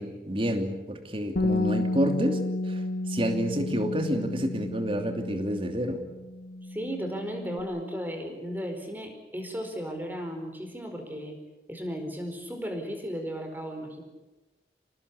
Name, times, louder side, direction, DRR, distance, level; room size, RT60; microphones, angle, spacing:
voice 1, 0.0-2.4 2.6-2.8 3.1-6.0, equal, 30° right, 5 dB, 2.9 m, -29 dB
Bass guitar, 1.4-7.6, left 2 dB, 65° left, 1.9 m, -32 dB
voice 2, 6.7-11.4 11.7-14.0, equal, 10° right, 4 dB, 4.8 m, -35 dB
27.5 x 18.5 x 8.5 m, 1.1 s
head